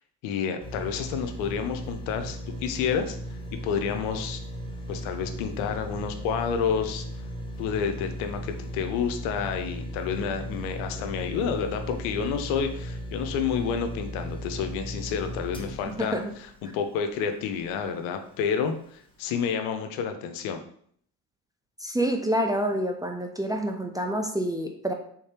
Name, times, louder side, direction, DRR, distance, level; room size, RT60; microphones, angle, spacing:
voice 1, 0.2-3.2 3.6-4.4 4.9-7.1 7.6-20.6, left 7 dB, 80° left, 6 dB, 0.6 m, -29 dB
sound 1, 0.6-17.8 18.3-18.4, equal, 10° left, 0.9 m, -37 dB
voice 2, 21.8-24.9, right 1 dB, 10° right, 3 dB, 0.4 m, -27 dB
3.5 x 3.2 x 2.9 m, 0.63 s
hypercardioid pair, 55°, 48 cm